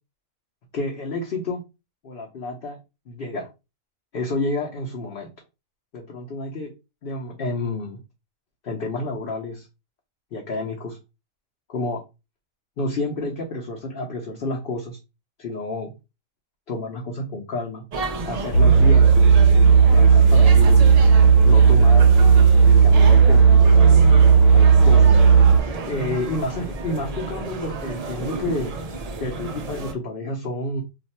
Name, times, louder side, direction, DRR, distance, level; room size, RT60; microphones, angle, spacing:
voice 1, 0.7-1.6 2.0-2.8 3.1-3.5 4.1-5.3 5.9-6.7 7.0-8.0 8.6-9.7 10.3-11.0 11.7-12.0 12.8-15.0 15.4-15.9 16.7-17.8 18.3-19.1 19.9-20.8 21.4-22.0 22.6-23.6 24.5-25.2 25.9-28.7 29.2-30.8, left 2 dB, 55° left, 0 dB, 0.8 m, -29 dB
sound 1, 17.9-29.9, right 3 dB, 70° right, 0.3 m, -31 dB
sound 2, 18.5-25.6, right 6 dB, 80° left, 1.0 m, -13 dB
2.5 x 2.3 x 4.1 m, 0.26 s
omnidirectional pair, 1.4 m